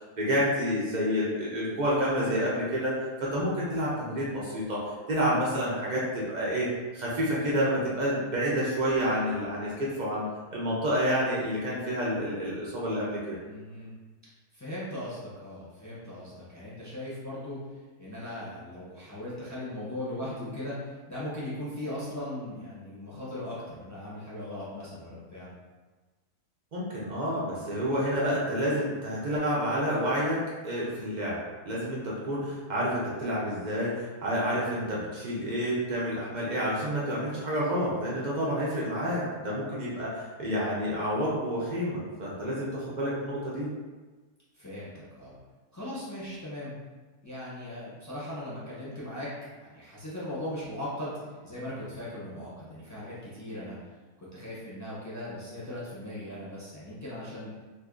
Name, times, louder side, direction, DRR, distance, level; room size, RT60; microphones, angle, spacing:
voice 1, 0.2-2.9 3.2-6.7 6.9-10.2 10.5-13.4 26.7-31.4 31.6-43.7, equal, 80° right, -6 dB, 0.4 m, -29 dB
voice 2, 13.4-13.9 14.5-17.6 18.0-25.5 44.5-45.3 45.7-46.7 47.2-49.3 49.6-51.2 51.4-53.8 54.2-57.5, left 1 dB, 20° left, -9 dB, 0.5 m, -38 dB
2.7 x 2.6 x 3.6 m, 1.3 s
omnidirectional pair, 1.7 m